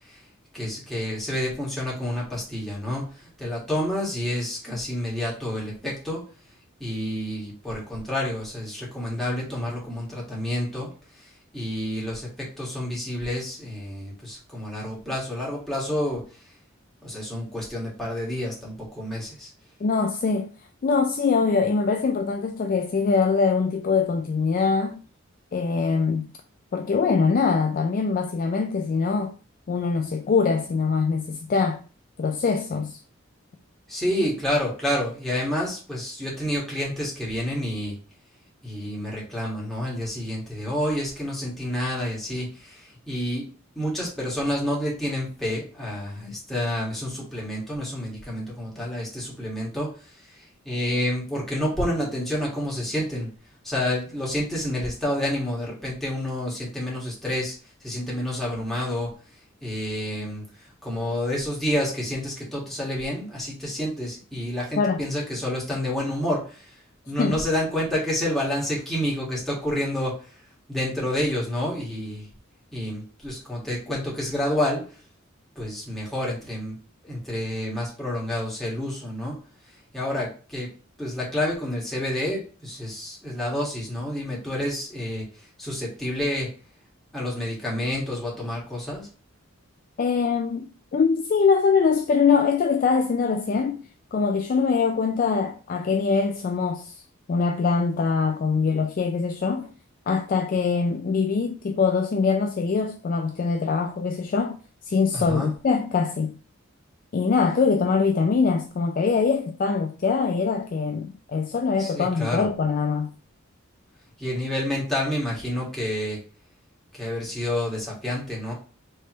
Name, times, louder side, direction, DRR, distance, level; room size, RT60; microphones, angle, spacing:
voice 1, 0.5-3.0 3.4-6.2 6.8-10.9 11.5-12.3 12.6-16.2 17.0-19.5 33.9-37.9 38.6-42.5 43.1-43.4 43.8-49.9 50.7-53.3 53.6-57.5 57.8-59.1 59.6-60.4 60.8-66.4 67.1-70.1 70.7-72.2 72.7-74.8 75.6-76.8 77.1-79.4 79.9-80.7 81.0-85.2 85.6-86.5 87.1-89.1 105.1-105.5 111.8-112.5 114.2-116.2 117.0-118.5, left 1 dB, ahead, 1.7 m, -29 dB
voice 2, 19.8-20.5 20.8-25.0 25.5-26.3 26.7-29.3 29.7-31.8 32.2-33.0 64.7-65.0 67.2-67.4 90.0-93.8 94.1-97.0 97.3-99.7 100.1-104.6 104.9-106.4 107.1-113.1, left 5 dB, 40° left, 0.3 m, -23 dB
4.5 x 3.3 x 3.0 m
head